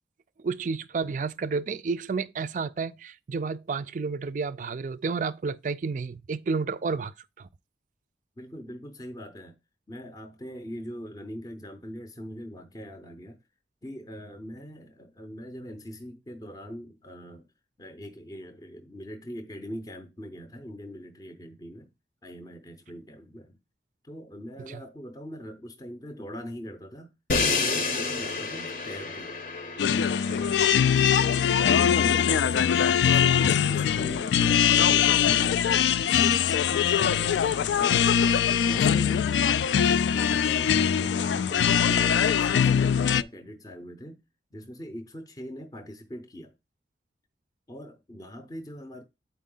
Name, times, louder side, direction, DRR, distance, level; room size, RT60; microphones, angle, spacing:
voice 1, 0.4-7.5 24.7-24.8, right 4 dB, 45° right, 0.4 m, -31 dB
voice 2, 8.4-9.6 9.9-13.4 13.8-17.5 17.8-21.9 22.2-23.6 24.0-27.1 27.4-29.4 29.9-35.7 36.6-39.6 40.1-44.2 44.5-46.6 47.7-49.0, equal, 20° left, 0.6 m, -41 dB
Crash cymbal, 27.3-33.3, left 4 dB, 50° left, 0.8 m, -32 dB
sound 1, 29.8-43.2, left 8 dB, 80° left, 0.3 m, -22 dB
8.1 x 4.6 x 3.8 m
head